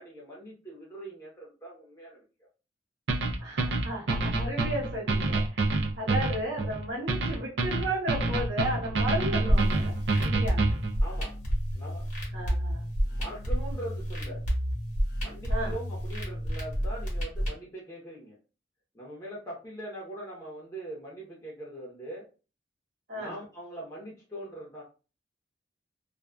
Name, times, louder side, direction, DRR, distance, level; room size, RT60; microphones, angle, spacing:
voice 1, 0.0-2.2 11.0-11.4 11.7-12.3 13.0-14.5 15.1-18.4 18.9-22.3 23.1-24.8, right 1 dB, 20° left, -5 dB, 0.7 m, -42 dB
sound 1, 3.1-11.0, right 2 dB, 90° right, 0.5 m, -27 dB
voice 2, 3.4-5.6 6.0-10.7 12.3-12.8 15.5-15.7 23.1-23.4, right 1 dB, 65° right, -7 dB, 0.9 m, -34 dB
sound 2, 9.5-17.5, equal, 45° left, 1.0 m, -30 dB
2.4 x 2.2 x 2.2 m, 0.33 s
head